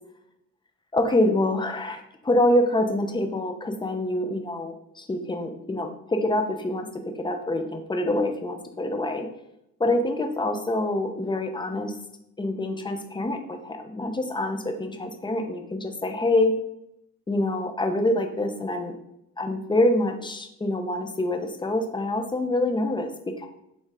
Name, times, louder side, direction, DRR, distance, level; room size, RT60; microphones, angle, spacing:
voice 1, 0.9-9.3 9.8-11.9 12.4-16.5 17.3-18.9 19.4-23.5, left 1 dB, 15° left, 5 dB, 0.8 m, -26 dB
6.4 x 4.0 x 3.8 m, 0.82 s
cardioid pair, 90°, 30 cm